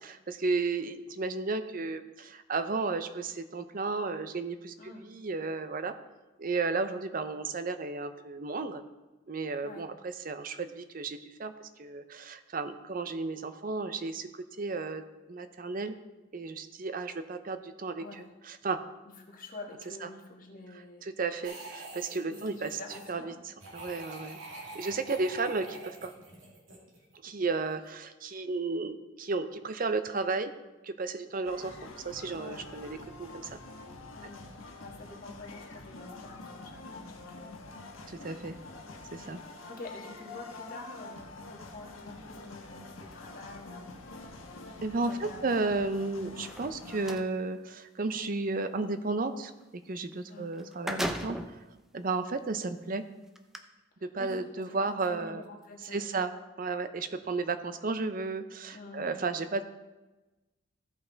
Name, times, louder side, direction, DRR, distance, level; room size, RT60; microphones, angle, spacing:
voice 1, 0.3-4.7 5.1-5.9 6.4-8.8 9.3-15.0 15.3-16.0 16.3-18.8 20.0-20.1 21.0-22.8 23.1-24.4 24.7-26.1 27.2-30.5 30.8-33.6 38.1-38.5 39.1-39.4 44.8-51.6 51.9-53.0 54.0-55.4 55.9-56.3 56.6-59.6, right 3 dB, 45° right, 10 dB, 0.6 m, -33 dB
voice 2, 18.0-18.3 19.2-21.0 22.3-23.4 32.3-32.7 34.1-34.5 34.8-37.7 39.4-44.5 45.0-45.7 50.3-50.5 54.2-54.4 54.7-56.4 58.7-59.2, left 2 dB, 40° left, 1 dB, 1.5 m, -47 dB
sound 1, 21.4-23.1 23.6-27.1, right 2 dB, 75° right, 2.4 m, -46 dB
sound 2, 31.4-47.1, left 3 dB, 85° left, 1.2 m, -46 dB
sound 3, 46.3-47.3 50.1-50.2 50.5-51.6 52.3-52.4 53.3-53.6, equal, ahead, 0.5 m, -36 dB
15.0 x 5.6 x 4.0 m, 1.1 s
head